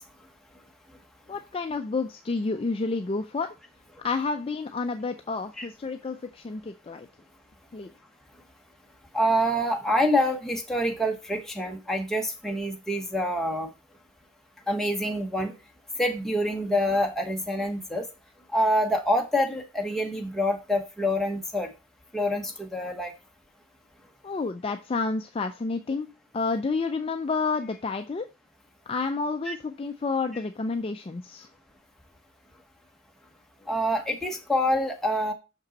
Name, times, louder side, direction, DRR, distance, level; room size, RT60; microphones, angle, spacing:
voice 1, 1.3-3.5 4.0-7.1 7.7-7.9 24.2-26.1 26.3-28.3 28.9-31.5, left 4 dB, 25° left, 7 dB, 0.3 m, -30 dB
voice 2, 9.1-13.7 14.7-15.5 16.0-18.1 18.5-21.7 22.1-23.1 29.5-29.6 33.7-35.3, equal, ahead, 1 dB, 1.0 m, -26 dB
6.0 x 5.4 x 4.0 m, 0.28 s
head